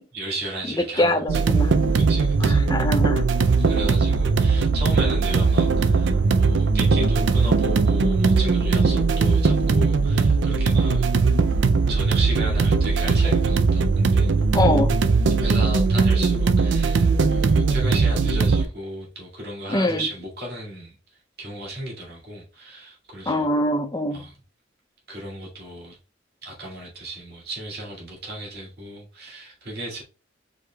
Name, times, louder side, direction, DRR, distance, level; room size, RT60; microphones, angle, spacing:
voice 1, 0.1-1.4 1.9-2.7 3.6-11.1 11.9-14.3 15.4-21.0 21.4-23.6 24.1-24.4 25.1-26.0 26.4-30.0, right 1 dB, 55° right, 2.1 m, -34 dB
voice 2, 1.0-1.7 2.4-3.2 14.5-15.0 19.7-20.0 23.3-24.2, left 1 dB, 20° left, 0.5 m, -23 dB
sound 1, 1.3-18.6, right 4 dB, 75° right, 0.4 m, -19 dB
4.9 x 4.7 x 2.3 m
head